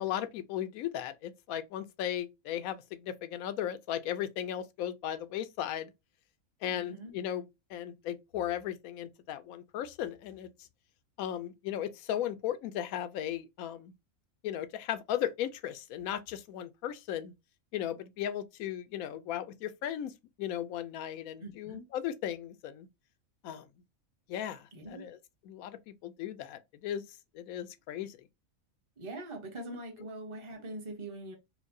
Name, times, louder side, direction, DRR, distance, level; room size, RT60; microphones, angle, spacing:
voice 1, 0.0-5.9 6.6-10.5 11.2-13.9 14.4-17.3 17.7-20.1 20.4-22.9 23.4-23.7 24.3-25.2 25.5-27.0 27.3-28.2, left 11 dB, 85° left, 1.0 m, -36 dB
voice 2, 6.6-7.2 21.4-21.9 24.7-25.1 29.0-31.3, right 1 dB, 25° right, 0.9 m, -43 dB
4.5 x 2.2 x 2.6 m
omnidirectional pair, 1.4 m